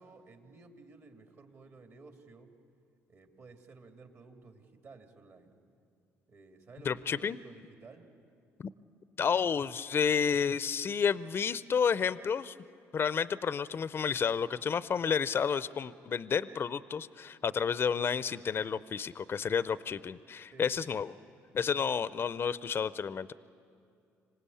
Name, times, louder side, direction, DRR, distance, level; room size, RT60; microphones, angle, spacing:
voice 1, 0.0-2.5 3.1-5.6 6.3-8.1 20.5-20.8, right 3 dB, 50° right, 5 dB, 2.6 m, -54 dB
voice 2, 6.8-7.4 8.6-8.7 9.2-12.5 12.9-21.1 21.5-23.3, left 6 dB, 40° left, 17 dB, 0.5 m, -31 dB
26.0 x 18.0 x 8.5 m, 2.4 s
supercardioid pair, 65°, 6 cm